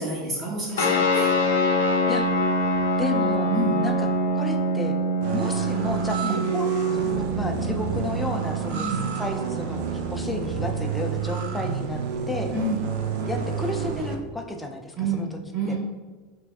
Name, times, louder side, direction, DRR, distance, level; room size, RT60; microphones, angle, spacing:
voice 1, 0.0-1.3 3.5-3.8 6.2-6.4 8.7-9.1 12.5-12.9 15.0-15.8, right 2 dB, 45° right, -6 dB, 1.0 m, -28 dB
sound 1, 0.8-11.7, equal, 80° left, 0.4 m, -26 dB
voice 2, 3.0-3.5 3.8-4.1 4.3-4.9 5.3-12.0 12.3-12.5 13.3-15.4 15.7-15.8, left 2 dB, 10° left, 3 dB, 0.4 m, -32 dB
sound 2, 5.2-14.1, right 6 dB, 65° right, 0.3 m, -29 dB
3.4 x 2.2 x 2.3 m, 1.4 s
hypercardioid pair, 90°, 0 cm